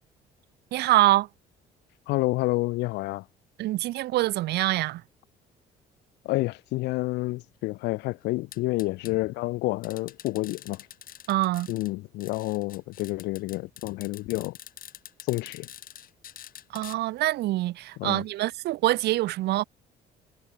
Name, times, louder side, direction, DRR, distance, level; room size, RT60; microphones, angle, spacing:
voice 1, 0.7-1.3 3.6-5.0 11.3-11.7 16.7-19.6, right 16 dB, 80° right, 2.4 m, -25 dB
voice 2, 2.1-3.2 6.2-10.9 11.7-14.6 15.3-15.7 18.0-18.2, left 20 dB, 85° left, 0.8 m, -29 dB
sound 1, 8.5-9.1 9.8-11.9 12.2-17.0, left 10 dB, 55° left, 6.0 m, -46 dB
cardioid pair, 110°, 17 cm